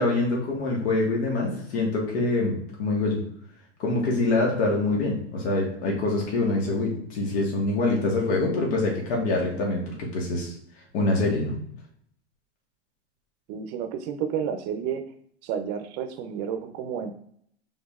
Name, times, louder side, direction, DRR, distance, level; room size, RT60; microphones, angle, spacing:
voice 1, 0.0-3.2 3.8-10.5 10.9-11.5, left 2 dB, 65° left, -1 dB, 1.6 m, -25 dB
voice 2, 13.5-15.1 15.4-17.1, right 8 dB, 45° right, 8 dB, 0.6 m, -31 dB
4.9 x 3.9 x 2.4 m, 0.66 s
hypercardioid pair, 110°, 34 cm